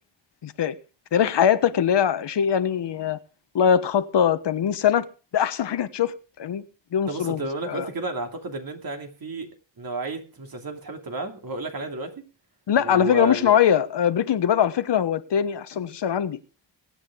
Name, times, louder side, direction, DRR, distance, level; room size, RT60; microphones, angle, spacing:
voice 1, 0.4-0.7 1.1-3.2 3.5-5.1 5.3-6.6 6.9-7.9 12.7-16.4, left 9 dB, 65° left, 1.2 m, -22 dB
voice 2, 7.1-9.5 9.8-12.3 12.8-13.5, right 2 dB, 50° right, 2.7 m, -31 dB
22.0 x 9.0 x 3.7 m
cardioid pair, 95°, 45 cm